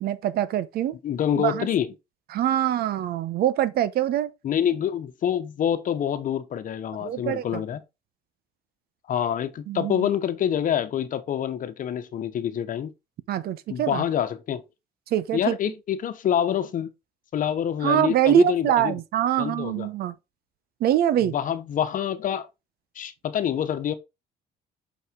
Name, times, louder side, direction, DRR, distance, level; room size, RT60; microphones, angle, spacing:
voice 1, 0.0-0.9 1.4-1.7 2.3-4.3 7.0-7.6 9.7-10.1 13.3-14.0 15.1-15.6 17.8-20.1 20.8-21.3, right 11 dB, 65° right, 0.9 m, -24 dB
voice 2, 1.0-1.9 4.4-7.8 9.1-12.9 13.7-14.6 15.3-16.9 17.3-19.0 19.4-19.9 21.2-22.5 23.0-23.9, left 9 dB, 50° left, 1.1 m, -26 dB
6.5 x 5.5 x 3.6 m
cardioid pair, 110°, 17 cm